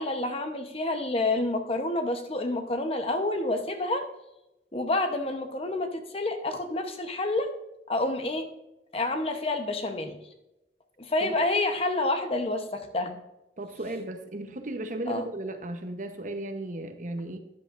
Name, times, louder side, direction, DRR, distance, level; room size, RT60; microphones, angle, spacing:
voice 1, 0.0-4.0 4.7-7.5 7.9-8.5 8.9-10.2 11.0-13.2 15.1-15.3, left 2 dB, 35° left, 6 dB, 0.9 m, -28 dB
voice 2, 13.6-17.4, right 1 dB, 45° right, 7 dB, 0.9 m, -35 dB
13.0 x 10.5 x 2.5 m, 0.93 s
head